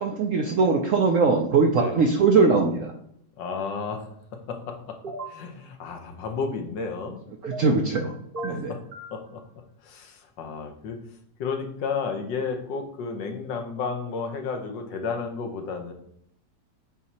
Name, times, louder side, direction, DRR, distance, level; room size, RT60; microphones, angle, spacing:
voice 1, 0.0-2.9 7.4-8.1 8.4-8.7, right 4 dB, 65° right, 3 dB, 0.8 m, -21 dB
voice 2, 3.4-4.1 4.3-5.0 5.3-7.2 8.5-8.8 9.1-9.4 9.8-11.0 11.4-15.9, left 5 dB, 80° left, 5 dB, 1.6 m, -32 dB
sound 1, 5.0-5.4 7.4-8.0 8.3-9.1, right 2 dB, 40° right, 1.0 m, -36 dB
7.9 x 2.8 x 4.2 m, 0.72 s
omnidirectional pair, 2.0 m